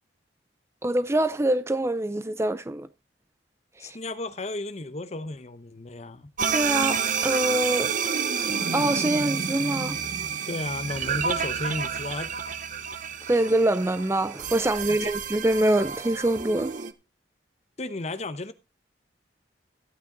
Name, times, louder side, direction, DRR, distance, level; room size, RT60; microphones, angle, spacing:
voice 1, 0.8-2.9 3.8-4.0 6.5-7.9 8.7-10.0 13.2-16.7, right 1 dB, 15° right, 0.5 m, -25 dB
voice 2, 3.8-6.3 10.5-12.7 14.9-15.1 17.8-18.5, left 2 dB, 40° left, 1.0 m, -34 dB
sound 1, 6.4-16.9, right 6 dB, 50° right, 0.9 m, -29 dB
14.5 x 8.8 x 3.9 m
head